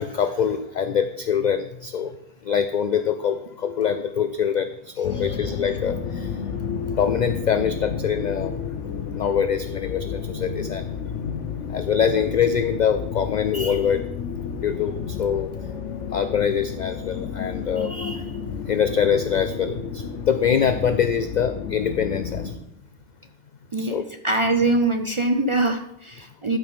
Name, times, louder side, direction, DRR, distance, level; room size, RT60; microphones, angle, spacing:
voice 1, 0.0-2.2 2.4-6.4 6.9-8.7 9.1-11.0 11.7-14.1 14.6-15.7 16.1-18.3 18.7-22.6 23.8-24.0, left 7 dB, 60° left, 10 dB, 0.5 m, -24 dB
sound 1, 5.0-22.5, left 7 dB, 85° left, 1.2 m, -31 dB
voice 2, 24.2-26.6, right 2 dB, 40° right, 5 dB, 0.4 m, -23 dB
12.0 x 6.1 x 3.6 m, 0.76 s
omnidirectional pair, 1.2 m